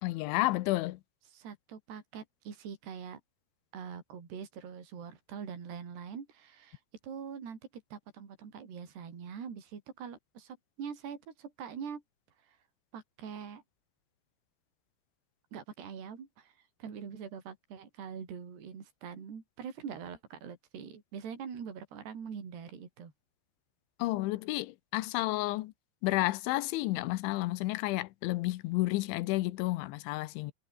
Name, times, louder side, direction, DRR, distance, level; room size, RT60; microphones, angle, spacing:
voice 1, 0.0-1.0 24.0-25.7 26.0-30.5, left 19 dB, 85° left, 3.2 m, -31 dB
voice 2, 1.3-3.2 3.7-7.6 7.9-12.0 12.5-12.6 12.9-13.6 15.5-16.5 16.8-23.1, right 7 dB, 60° right, 6.4 m, -43 dB
omnidirectional pair, 5.3 m